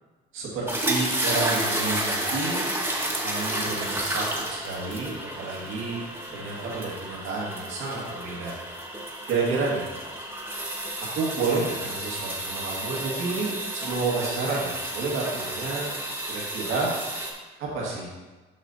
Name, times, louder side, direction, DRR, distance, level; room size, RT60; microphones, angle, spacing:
voice 1, 0.3-2.7 3.2-6.0 6.3-8.6 9.3-9.8 11.1-15.9 16.3-16.9 17.6-18.1, right 3 dB, 90° right, -3 dB, 1.6 m, -30 dB
sound 1, 0.7-17.3, right 1 dB, 10° right, 1.2 m, -31 dB
6.1 x 5.4 x 3.9 m, 1.2 s
cardioid pair, 90°, 20 cm